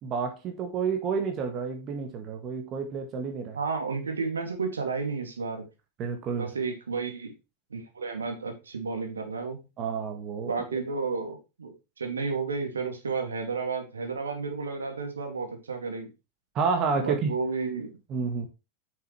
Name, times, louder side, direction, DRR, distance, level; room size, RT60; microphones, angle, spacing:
voice 1, 0.0-3.6 6.0-6.5 9.8-10.8 16.5-17.3 18.1-18.5, right 5 dB, 35° right, 1.7 m, -30 dB
voice 2, 3.5-5.6 6.3-7.3 7.7-9.7 10.4-16.1 16.9-17.9, right 4 dB, 70° right, 2.4 m, -32 dB
9.4 x 6.6 x 3.2 m
figure-of-eight pair, 90°, 0 cm